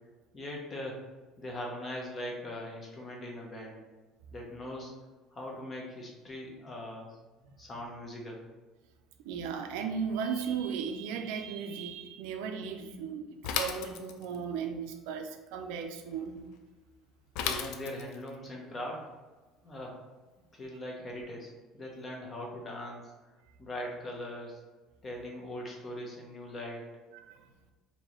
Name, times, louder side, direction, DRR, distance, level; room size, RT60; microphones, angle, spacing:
voice 1, 0.3-1.0 1.4-3.8 4.3-4.9 5.3-7.2 7.6-8.4 17.4-19.0 19.6-20.0 20.5-23.1 23.6-24.6 25.0-26.9, left 1 dB, 25° left, -1 dB, 0.8 m, -40 dB
voice 2, 9.2-16.4 27.1-27.5, right 6 dB, 85° right, 6 dB, 0.4 m, -36 dB
Bicycle / Mechanisms, 13.4-14.4 17.4-18.3, left 7 dB, 75° left, 0.4 m, -34 dB
4.5 x 2.7 x 3.0 m, 1.2 s
cardioid pair, 150°, 0 cm